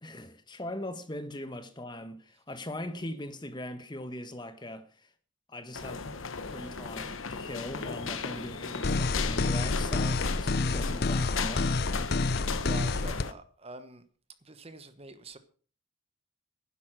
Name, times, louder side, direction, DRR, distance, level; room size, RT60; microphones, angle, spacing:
voice 1, 0.0-5.1 5.5-6.1 6.5-11.7, left 1 dB, 20° left, 1.2 m, -40 dB
sound 1, 5.7-13.3, left 5 dB, 75° left, 1.1 m, -36 dB
sound 2, 8.8-13.2, left 3 dB, 50° left, 0.6 m, -28 dB
voice 2, 12.5-14.0 14.4-15.4, right 2 dB, 30° right, 1.2 m, -45 dB
11.5 x 10.5 x 6.2 m
head